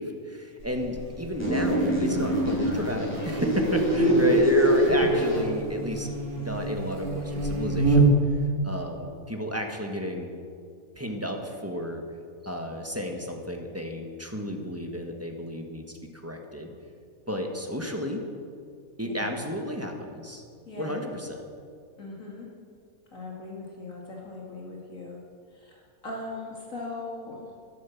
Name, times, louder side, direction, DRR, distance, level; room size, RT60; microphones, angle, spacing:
voice 1, 0.0-6.1 6.4-8.1 8.6-10.3 11.0-12.0 12.4-16.7 17.3-18.2 19.0-20.4 20.8-21.4, equal, 10° right, 2 dB, 1.4 m, -32 dB
Buzz, 0.6-8.4, right 3 dB, 80° right, 2.9 m, -29 dB
sound 1, 1.4-5.4, right 1 dB, 10° left, 4.8 m, -23 dB
voice 2, 3.9-4.3 19.0-19.1 20.7-21.0 22.0-22.5 23.1-25.2 25.5-25.8 26.0-27.5, left 3 dB, 60° left, -2 dB, 2.5 m, -38 dB
13.0 x 11.5 x 7.2 m, 2.2 s
omnidirectional pair, 1.5 m